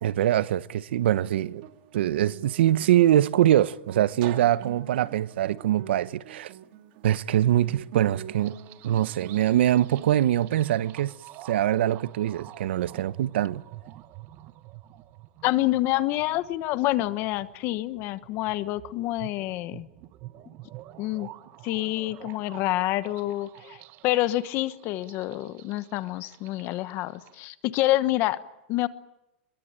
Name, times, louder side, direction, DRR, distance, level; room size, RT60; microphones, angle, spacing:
voice 1, 0.0-1.6 1.9-6.5 7.0-8.5 8.8-11.1 11.4-13.6, right 12 dB, 75° right, 1.0 m, -23 dB
Guitar, 0.7-10.2, right 12 dB, 55° right, 2.7 m, -43 dB
sound 1, 8.3-27.4, right 16 dB, 40° right, 1.3 m, -48 dB
voice 2, 15.4-19.9 21.0-21.3 21.6-23.8 24.0-28.4 28.7-28.9, left 16 dB, 40° left, 1.1 m, -27 dB
24.5 x 23.0 x 8.9 m
supercardioid pair, 150°, 6 cm